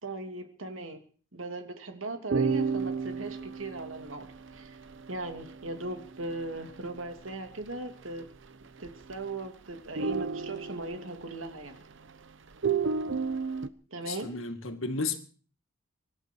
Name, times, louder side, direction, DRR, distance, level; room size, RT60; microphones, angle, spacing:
voice 1, 0.0-1.0 1.3-4.3 4.5-4.8 5.1-8.2 8.8-11.8 13.9-14.3, right 2 dB, 85° right, 2.8 m, -38 dB
sound 1, 2.3-7.3 7.6-7.7 8.0-8.5 8.8-9.5 9.8-12.1 12.5-13.7, right 5 dB, 65° right, 1.0 m, -32 dB
voice 2, 14.0-15.2, left 4 dB, 80° left, 2.1 m, -33 dB
24.5 x 12.0 x 4.7 m
head